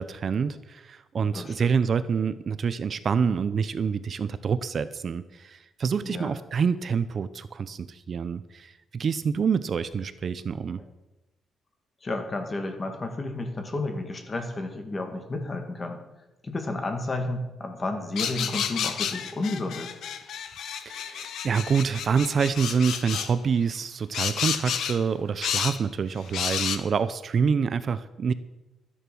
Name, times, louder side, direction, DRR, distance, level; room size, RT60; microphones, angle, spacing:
voice 1, 0.0-10.8 20.9-28.3, right 6 dB, 45° right, 14 dB, 0.5 m, -27 dB
voice 2, 1.2-1.8 6.0-6.3 10.8-10.9 12.0-16.0 16.4-19.9, left 2 dB, 25° left, 6 dB, 2.0 m, -32 dB
sound 1, 18.2-23.3 24.1-25.0 25.4-25.8 26.3-26.8, left 8 dB, 70° left, 1.1 m, -30 dB
13.0 x 9.9 x 6.1 m, 1.0 s
cardioid pair, 140°, 0 cm